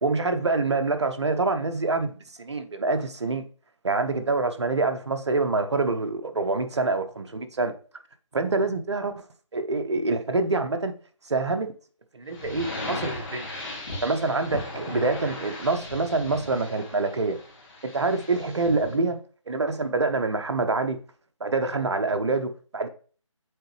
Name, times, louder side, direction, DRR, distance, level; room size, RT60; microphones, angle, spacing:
voice 1, 0.0-3.4 3.8-7.7 8.3-9.1 9.5-10.9 11.3-11.7 12.1-13.5 14.0-17.4 17.9-19.2 19.5-21.0 21.4-22.9, right 3 dB, 55° right, 0.8 m, -26 dB
sound 1, 12.3-19.0, left 2 dB, 45° left, 3.0 m, -37 dB
7.9 x 3.7 x 3.2 m
figure-of-eight pair, 155°, 17 cm